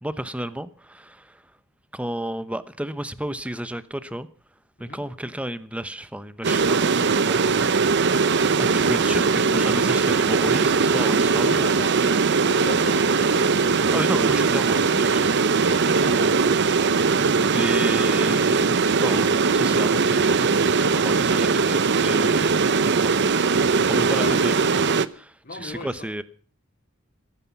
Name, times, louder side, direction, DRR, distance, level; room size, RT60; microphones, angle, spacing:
voice 1, 0.0-1.4 1.9-4.3 4.8-7.9 8.6-11.7 13.9-15.8 16.1-16.3 17.5-25.3 25.6-26.2, right 1 dB, 5° right, 0.9 m, -32 dB
sound 1, 6.4-25.1, right 4 dB, 55° right, 0.8 m, -20 dB
voice 2, 10.9-13.5 15.5-16.3 16.9-17.2 24.1-24.4 25.4-26.1, left 3 dB, 50° left, 3.9 m, -37 dB
15.5 x 15.0 x 6.0 m
head